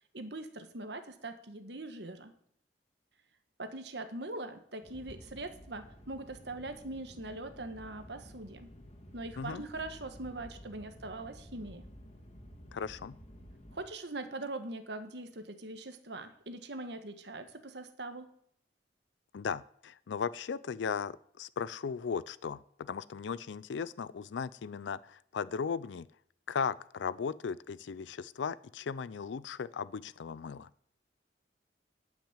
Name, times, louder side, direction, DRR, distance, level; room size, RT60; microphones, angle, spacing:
voice 1, 0.1-2.3 3.6-8.7 9.1-11.8 13.7-18.3, right 2 dB, 70° right, 9 dB, 1.5 m, -42 dB
sound 1, 4.8-13.9, equal, 35° left, 2.5 m, -52 dB
voice 2, 12.7-13.2 19.3-26.1 26.5-30.7, left 6 dB, 90° left, 19 dB, 0.4 m, -37 dB
12.0 x 6.2 x 8.9 m, 0.68 s
head